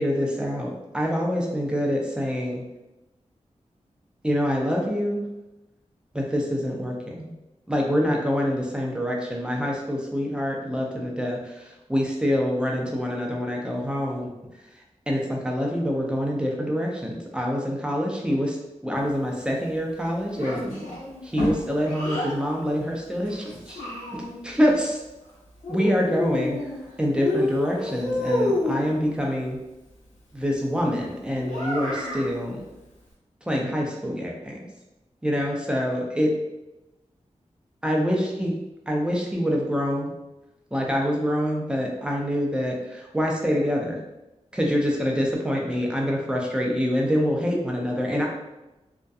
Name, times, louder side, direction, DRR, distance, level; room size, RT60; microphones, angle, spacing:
voice 1, 0.0-2.6 4.2-5.2 6.1-7.3 7.7-14.3 15.1-18.6 18.8-20.9 21.2-23.8 24.1-25.0 25.7-26.7 27.0-29.6 30.3-32.7 33.5-34.6 35.2-36.4 37.8-38.6 38.9-40.1 40.7-44.0 44.5-48.2, equal, 10° right, -1 dB, 0.5 m, -26 dB
Child speech kid speaking, 20.4-22.3 23.3-24.5 25.6-26.8 27.1-28.9 31.4-32.3, left 1 dB, 85° left, 1.0 m, -29 dB
2.6 x 2.2 x 2.3 m, 0.99 s
wide cardioid pair, 100°, 12 cm